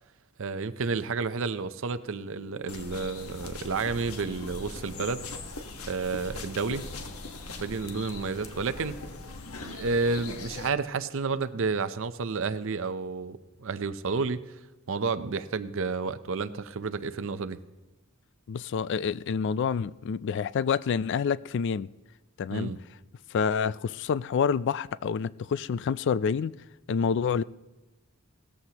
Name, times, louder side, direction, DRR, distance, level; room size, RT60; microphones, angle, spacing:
voice 1, 0.4-5.2 5.9-6.9 7.6-9.0 9.6-14.6 14.9-17.6 22.5-22.8, right 4 dB, 65° right, 0.6 m, -31 dB
sound 1, 2.7-10.7, left 3 dB, 85° left, 1.3 m, -40 dB
voice 2, 18.5-21.9 22.4-22.7 23.3-26.5 26.9-27.4, left 6 dB, 55° left, 0.3 m, -28 dB
17.5 x 14.0 x 2.9 m
head